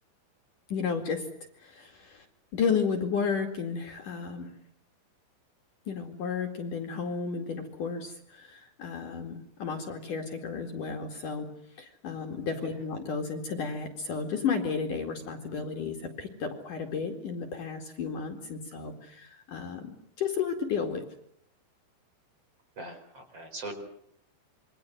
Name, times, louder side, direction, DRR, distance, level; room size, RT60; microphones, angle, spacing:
voice 1, 0.7-1.3 1.6-2.2 2.5-4.5 5.9-11.5 11.8-21.0, left 5 dB, 50° left, 4 dB, 3.4 m, -33 dB
voice 2, 22.8-23.8, right 2 dB, 35° right, 6 dB, 5.1 m, -41 dB
27.5 x 24.5 x 7.9 m, 0.70 s
omnidirectional pair, 5.3 m